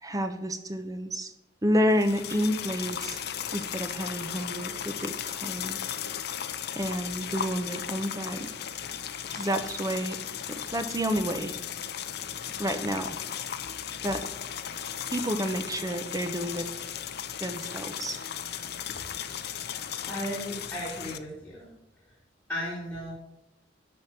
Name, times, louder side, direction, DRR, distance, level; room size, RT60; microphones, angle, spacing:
voice 1, 0.0-1.3 1.6-3.2 3.5-5.8 6.7-8.5 9.3-10.2 10.5-11.5 12.6-13.2 14.0-14.2 15.1-16.7 17.4-18.2, equal, 20° right, 7 dB, 1.0 m, -30 dB
sound 1, 1.9-21.2, left 9 dB, 60° left, 0.6 m, -36 dB
voice 2, 20.0-21.7 22.5-23.1, equal, 15° left, -9 dB, 3.0 m, -35 dB
12.5 x 4.3 x 7.4 m, 0.89 s
head